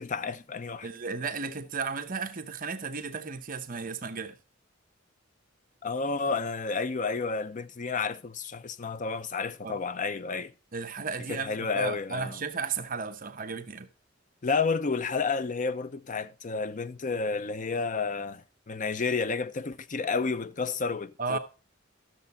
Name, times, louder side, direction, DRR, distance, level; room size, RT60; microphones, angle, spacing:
voice 1, 0.0-0.9 5.8-10.5 11.3-12.4 14.4-21.4, left 4 dB, 40° left, 0.6 m, -31 dB
voice 2, 0.8-4.3 9.6-9.8 10.7-13.9 21.2-21.4, right 5 dB, 45° right, 0.9 m, -34 dB
13.0 x 6.8 x 4.1 m
head